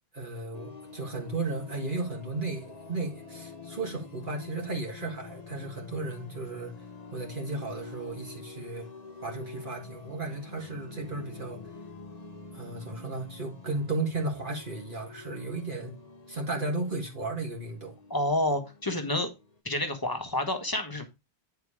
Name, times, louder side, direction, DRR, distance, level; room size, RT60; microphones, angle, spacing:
voice 1, 0.1-8.9 9.2-11.8 12.5-16.0 16.3-17.9, right 3 dB, 50° right, 1.7 m, -35 dB
sound 1, 0.5-19.6, left 4 dB, 40° left, 1.1 m, -47 dB
voice 2, 18.1-19.3 19.6-21.0, left 1 dB, 20° left, 1.4 m, -29 dB
9.4 x 4.7 x 4.8 m
omnidirectional pair, 1.1 m